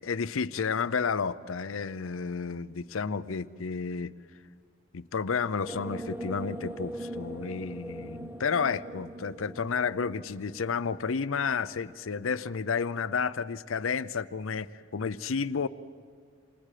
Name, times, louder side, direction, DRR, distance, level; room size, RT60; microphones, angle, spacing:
voice 1, 0.0-4.1 4.9-15.7, left 5 dB, 85° left, 16 dB, 0.6 m, -31 dB
sound 1, 5.7-12.0, right 1 dB, 10° right, 0.8 m, -41 dB
27.5 x 27.5 x 5.0 m, 2.2 s
head